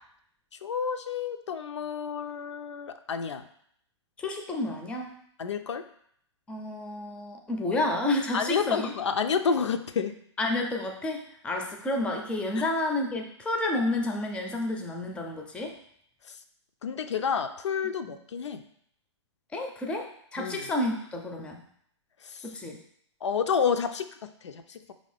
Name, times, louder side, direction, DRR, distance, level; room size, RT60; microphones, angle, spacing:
voice 1, 0.6-3.4 5.4-5.8 8.3-10.1 12.6-12.7 16.8-18.6 20.4-20.7 22.2-22.4 23.2-24.9, left 6 dB, 70° left, 8 dB, 0.4 m, -30 dB
voice 2, 4.2-5.2 6.5-8.9 10.4-15.7 19.5-21.6 22.4-22.8, left 2 dB, 5° left, 2 dB, 0.4 m, -30 dB
4.9 x 2.7 x 3.3 m, 0.67 s
figure-of-eight pair, 120°, 15 cm